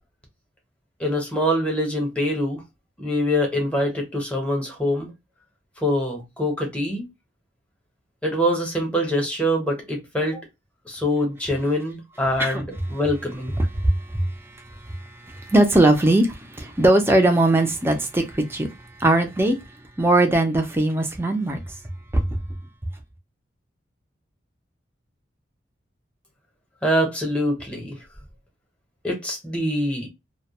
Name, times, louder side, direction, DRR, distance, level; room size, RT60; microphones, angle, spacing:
voice 1, 1.0-2.6 3.0-5.1 5.8-7.1 8.2-10.4 10.8-13.5 26.8-28.0 29.0-30.1, equal, 5° left, 0.8 m, -24 dB
voice 2, 13.6-14.3 14.7-18.7 19.0-19.6 20.0-21.6 22.1-22.4, right 1 dB, 15° right, 0.5 m, -20 dB
2.3 x 2.2 x 2.8 m
head